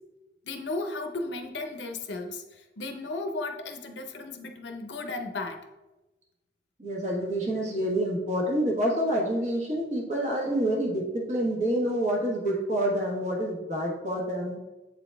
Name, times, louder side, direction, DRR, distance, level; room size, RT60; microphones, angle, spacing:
voice 1, 0.4-5.6, left 2 dB, 75° left, 5 dB, 0.7 m, -35 dB
voice 2, 6.8-14.6, right 1 dB, 40° right, -2 dB, 1.3 m, -27 dB
7.9 x 4.0 x 3.4 m, 1.1 s
head